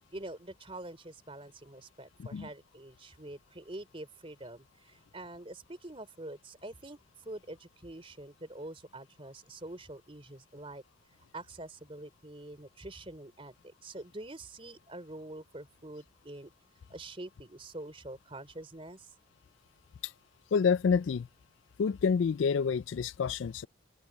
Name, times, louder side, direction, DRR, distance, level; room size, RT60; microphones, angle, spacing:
voice 1, 0.1-10.8 11.3-16.5 16.9-19.1, right 2 dB, 30° right, 3.5 m, -45 dB
voice 2, 20.5-21.3 21.8-23.7, left 6 dB, 75° left, 0.4 m, -28 dB
open air
head